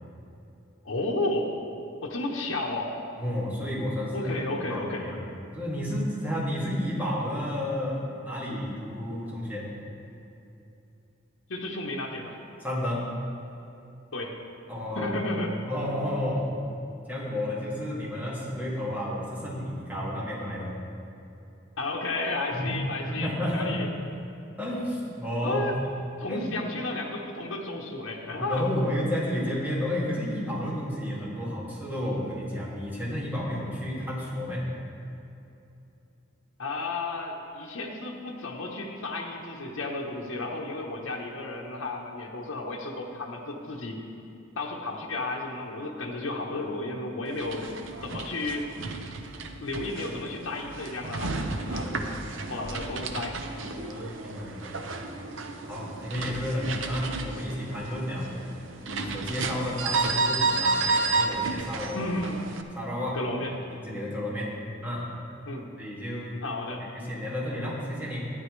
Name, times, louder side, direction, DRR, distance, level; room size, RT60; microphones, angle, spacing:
voice 1, 0.8-1.5 2.0-2.9 4.1-5.1 11.5-12.4 14.1-14.3 15.0-15.6 21.8-23.9 25.4-25.8 26.2-28.6 36.6-44.0 44.6-47.7 48.0-48.7 49.6-51.4 51.7-51.9 52.5-53.8 61.9-62.4 63.1-63.6 65.4-65.7 66.4-66.8, left 2 dB, 80° left, -2 dB, 0.9 m, -33 dB
voice 2, 3.2-5.2 5.5-9.6 12.6-13.1 14.7-15.1 15.7-16.6 17.1-20.7 22.5-23.8 24.6-25.7 26.3-26.6 28.4-34.7 51.8-52.7 53.9-55.0 55.6-58.3 58.8-62.1 62.8-63.2 63.7-64.5 64.8-65.1 65.8-66.3 66.8-68.3, left 1 dB, 10° right, -7 dB, 2.0 m, -31 dB
sound 1, 47.3-62.6, right 3 dB, 65° right, 0.6 m, -32 dB
13.0 x 9.8 x 3.2 m, 2.8 s
head